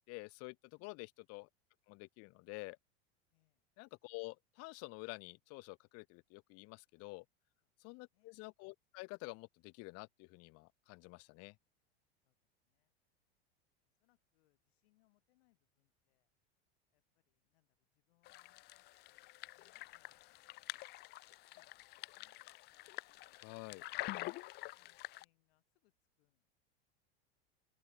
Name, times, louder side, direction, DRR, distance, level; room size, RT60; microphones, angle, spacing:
voice 1, 0.1-1.5 1.9-2.8 3.8-7.2 7.8-11.6 23.4-23.8, left 26 dB, 50° left, 0.9 m, -49 dB
voice 2, 0.8-1.1 3.3-3.6 7.6-7.7 8.1-8.4 12.2-12.4 12.6-12.9 14.0-16.3 16.9-20.8 21.5-22.4 22.7-23.2 23.5-24.4 24.8-26.5, left 20 dB, 70° left, 5.3 m, -80 dB
sound 1, 18.3-25.2, left 19 dB, 35° left, 0.4 m, -47 dB
open air
supercardioid pair, 110°, 32 cm